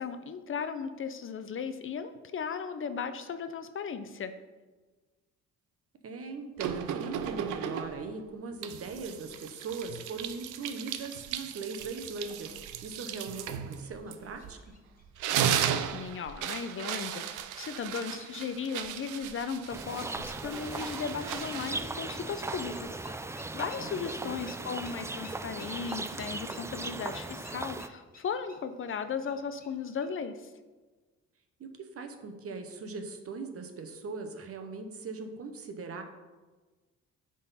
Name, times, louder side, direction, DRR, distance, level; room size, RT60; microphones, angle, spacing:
voice 1, 0.0-4.3 15.9-17.2 17.6-30.4, left 6 dB, 45° left, 10 dB, 0.6 m, -36 dB
voice 2, 6.0-12.5 12.8-14.6 23.7-24.3 31.6-36.0, right 4 dB, 50° right, 6 dB, 0.9 m, -40 dB
sound 1, 6.6-8.1 8.6-14.7 15.0-22.9, right 9 dB, 85° right, 0.6 m, -36 dB
sound 2, 10.6-30.1, left 2 dB, 30° left, 1.6 m, -59 dB
sound 3, 19.7-27.9, right 2 dB, 10° right, 0.3 m, -38 dB
9.4 x 3.8 x 4.1 m, 1.3 s
cardioid pair, 90°, 30 cm